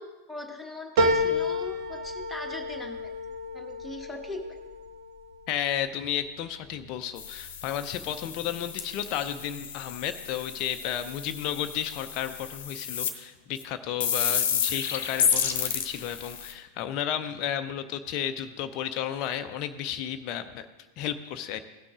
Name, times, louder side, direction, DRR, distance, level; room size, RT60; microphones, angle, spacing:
voice 1, 0.0-3.1 3.5-4.4, left 2 dB, 10° left, 2 dB, 1.3 m, -40 dB
sound 1, 1.0-5.7 6.2-6.9 7.3-7.4, left 1 dB, 50° right, 1.1 m, -30 dB
voice 2, 5.5-20.6 21.0-21.6, left 10 dB, 40° left, 8 dB, 0.5 m, -33 dB
sound 2, 7.2-13.1 13.6-13.7 14.0-16.5, left 8 dB, 55° left, 0.9 m, -31 dB
16.5 x 6.0 x 3.7 m, 1.1 s
figure-of-eight pair, 90°, 0 cm